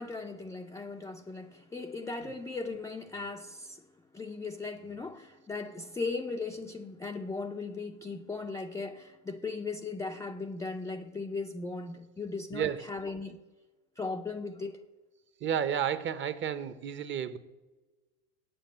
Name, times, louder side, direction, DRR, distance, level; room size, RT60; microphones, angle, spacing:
voice 1, 0.0-3.9 4.1-13.4 14.0-14.8, left 3 dB, 10° left, 0.4 m, -38 dB
voice 2, 15.4-17.4, right 8 dB, 30° right, 0.7 m, -31 dB
8.5 x 7.6 x 8.1 m
hypercardioid pair, 100°, 41 cm